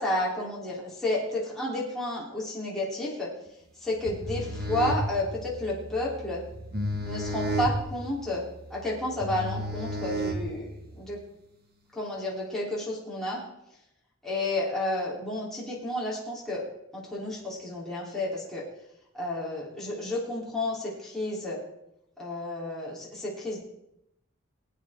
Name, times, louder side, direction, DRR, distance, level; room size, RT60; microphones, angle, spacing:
voice 1, 0.0-3.3 3.8-6.4 7.0-8.4 8.7-11.2 11.9-13.4 14.2-16.6 16.9-18.6 19.1-21.6 22.2-23.6, left 1 dB, ahead, -7 dB, 3.6 m, -31 dB
sound 1, 4.0-10.9, right 1 dB, 50° right, 1.8 m, -33 dB
22.0 x 9.2 x 3.7 m, 0.82 s
head